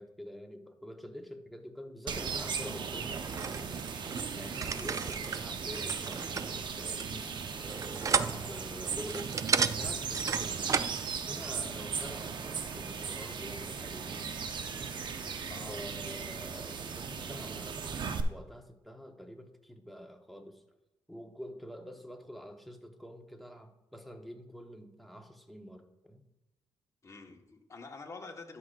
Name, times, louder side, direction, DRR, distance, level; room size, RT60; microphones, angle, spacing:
voice 1, 0.0-3.7 4.4-9.3 9.7-10.9 11.2-14.1 15.7-20.6 21.1-26.2, equal, ahead, 3 dB, 1.2 m, -47 dB
sound 1, 2.1-18.2, right 6 dB, 55° right, 0.8 m, -37 dB
sound 2, 3.1-11.0, right 5 dB, 35° right, 0.4 m, -34 dB
voice 2, 4.8-5.1 8.3-8.7 15.5-16.0 27.0-28.6, left 3 dB, 35° left, 2 dB, 1.4 m, -48 dB
12.0 x 6.6 x 2.5 m, 0.91 s
cardioid pair, 90°, 9 cm